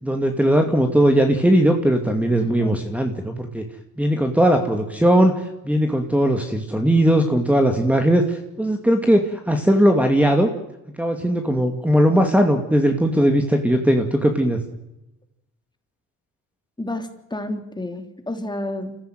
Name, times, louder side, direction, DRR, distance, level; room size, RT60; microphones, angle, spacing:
voice 1, 0.0-3.6 4.0-5.3 5.6-10.5 11.0-14.6, right 1 dB, 5° right, 5 dB, 2.5 m, -19 dB
voice 2, 2.4-2.8 16.8-19.0, left 1 dB, 15° left, 6 dB, 3.4 m, -30 dB
26.5 x 15.0 x 9.2 m, 0.93 s
cardioid pair, 90°, 30 cm